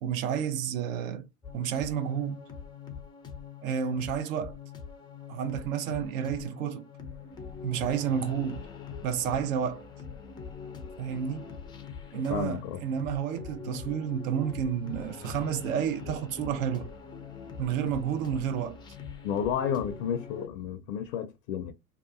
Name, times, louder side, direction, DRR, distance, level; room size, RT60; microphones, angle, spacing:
voice 1, 0.0-1.3 1.5-2.4 3.6-4.6 5.3-6.9 7.6-8.6 9.0-9.9 11.0-11.5 12.1-16.9 17.6-18.8, right 8 dB, 60° right, 0.7 m, -30 dB
sound 1, 1.4-20.5, left 6 dB, 10° left, 0.4 m, -43 dB
voice 2, 12.1-12.8 19.2-21.7, left 8 dB, 60° left, 0.5 m, -32 dB
2.8 x 2.3 x 2.4 m
hypercardioid pair, 95°, 45 cm